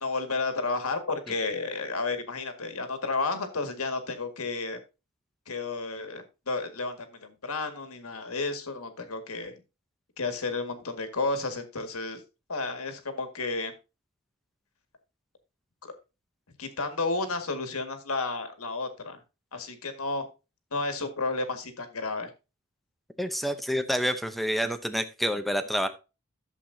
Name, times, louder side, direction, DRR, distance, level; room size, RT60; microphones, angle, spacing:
voice 1, 0.0-4.8 5.5-9.6 10.2-12.2 12.5-13.7 15.8-15.9 16.6-19.2 19.5-20.3 20.7-22.3, left 3 dB, 80° left, 7 dB, 2.0 m, -32 dB
voice 2, 23.2-25.9, equal, ahead, 9 dB, 0.7 m, -28 dB
11.5 x 7.5 x 2.7 m, 0.28 s
head